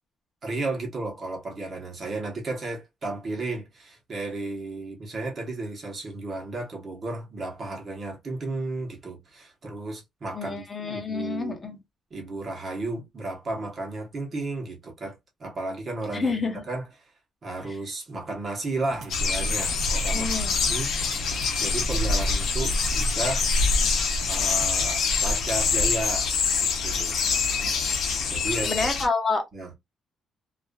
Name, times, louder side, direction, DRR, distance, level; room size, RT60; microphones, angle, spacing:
voice 1, 0.4-11.6 12.1-16.3 16.7-17.1 17.4-20.9 21.2-23.5 24.3-26.3 26.6-27.2 28.3-28.9 29.5-29.7, right 2 dB, 30° right, 0.9 m, -33 dB
voice 2, 10.3-11.8 16.1-16.6 17.7-17.8 20.1-20.5 27.6-27.7 28.6-29.4, left 4 dB, 20° left, 0.7 m, -28 dB
sound 1, 18.9-24.9, right 3 dB, 55° right, 0.5 m, -42 dB
sound 2, 19.1-29.1, left 4 dB, 60° left, 0.7 m, -25 dB
2.4 x 2.3 x 2.2 m
cardioid pair, 170°, 0 cm